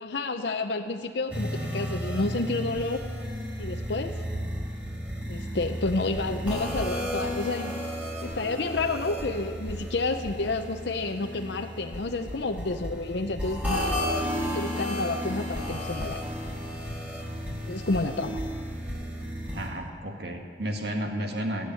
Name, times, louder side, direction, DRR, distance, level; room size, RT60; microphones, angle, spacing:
voice 1, 0.0-3.0 3.6-4.2 5.3-7.8 8.2-14.0 14.3-16.2 17.7-18.4, left 3 dB, 70° left, 5 dB, 0.7 m, -30 dB
sound 1, 1.3-19.7, equal, 10° right, 2.4 m, -33 dB
voice 2, 19.5-21.7, equal, 60° right, 2 dB, 1.7 m, -32 dB
15.5 x 8.1 x 9.0 m, 2.2 s
head